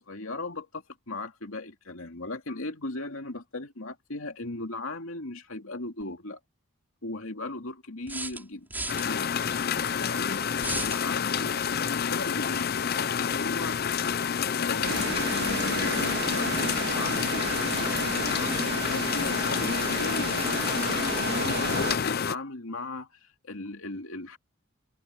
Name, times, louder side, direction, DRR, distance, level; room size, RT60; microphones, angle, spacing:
voice 1, 0.0-6.4 7.0-8.7 9.0-9.4 10.0-12.8 13.2-13.8 14.5-24.4, left 2 dB, 70° left, 2.6 m, -37 dB
sound 1, 6.0-6.1 8.1-9.0 10.6-11.0, right 2 dB, 10° right, 5.5 m, -34 dB
sound 2, 8.9-22.4, left 7 dB, 45° left, 0.5 m, -28 dB
sound 3, 14.8-22.0, right 4 dB, 50° right, 2.3 m, -33 dB
head